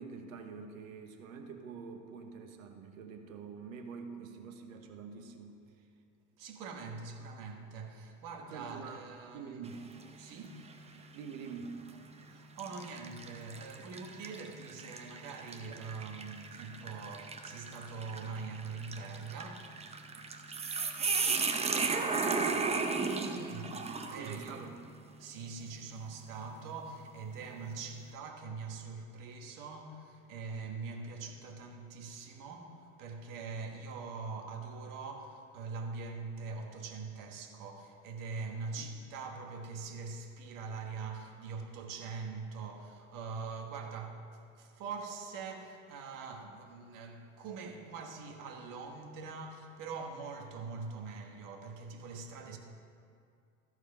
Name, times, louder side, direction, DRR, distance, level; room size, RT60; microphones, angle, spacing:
voice 1, 0.0-5.9 8.5-9.0 9.3-9.8 11.1-11.8 21.6-23.0 24.1-24.8 38.7-38.9, right 5 dB, 75° right, 1.2 m, -46 dB
voice 2, 6.4-9.7 10.2-10.7 12.2-20.0 23.3-24.6 25.2-52.6, right 4 dB, 50° right, 1.5 m, -43 dB
sound 1, 9.7-10.1 10.6-10.8 11.7-12.0 12.6-24.6, right 4 dB, 15° right, 0.7 m, -35 dB
13.5 x 4.8 x 5.5 m
hypercardioid pair, 85°, 40 cm